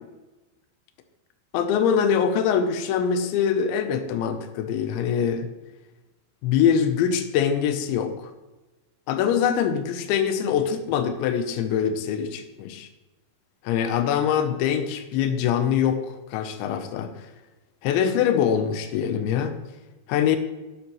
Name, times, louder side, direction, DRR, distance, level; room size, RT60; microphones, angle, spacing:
voice 1, 1.5-5.5 6.4-8.3 9.1-12.9 13.6-17.1 17.8-19.6 20.1-20.4, left 8 dB, 90° left, 8 dB, 3.1 m, -23 dB
11.5 x 10.5 x 3.1 m, 1.1 s
omnidirectional pair, 5.1 m